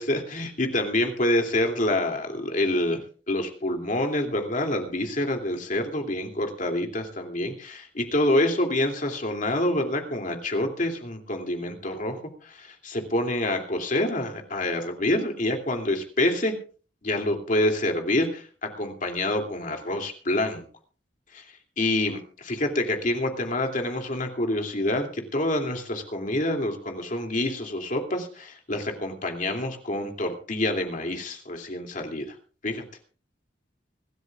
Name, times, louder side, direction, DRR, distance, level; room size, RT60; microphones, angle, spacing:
voice 1, 0.0-3.0 3.3-16.5 17.0-20.6 21.3-21.4 21.8-32.4 32.6-32.8, left 1 dB, 50° left, 3 dB, 2.7 m, -27 dB
25.0 x 13.0 x 2.4 m, 0.39 s
head